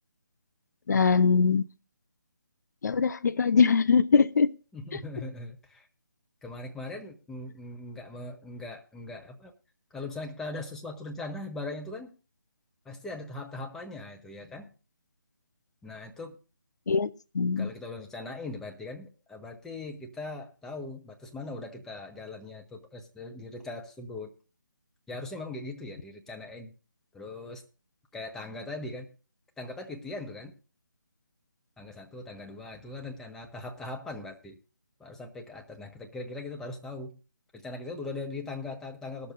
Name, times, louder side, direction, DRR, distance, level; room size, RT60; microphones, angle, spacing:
voice 1, 0.9-1.6 2.8-4.5 16.9-17.7, left 5 dB, 55° left, 16 dB, 0.6 m, -22 dB
voice 2, 4.7-5.9 6.4-9.5 9.9-12.1 12.8-14.7 15.8-16.4 17.6-24.3 25.1-26.7 27.1-27.6 28.1-29.1 29.6-30.5 31.8-34.6 35.0-37.1 37.5-39.3, left 2 dB, 5° left, 3 dB, 0.7 m, -40 dB
19.0 x 6.8 x 3.8 m, 0.34 s
figure-of-eight pair, 155°, 11 cm